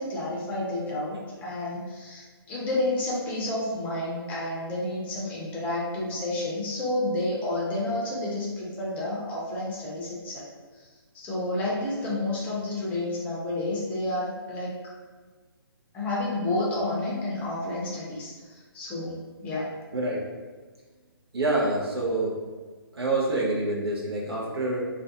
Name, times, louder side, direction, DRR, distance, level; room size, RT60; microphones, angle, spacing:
voice 1, 0.0-10.5 10.7-10.9 11.1-14.8 15.9-19.8, left 1 dB, 10° left, -6 dB, 0.5 m, -30 dB
voice 2, 19.9-20.2 21.3-22.4 22.9-24.8, right 2 dB, 85° right, -3 dB, 0.6 m, -26 dB
2.3 x 2.1 x 2.7 m, 1.4 s
figure-of-eight pair, 145°, 13 cm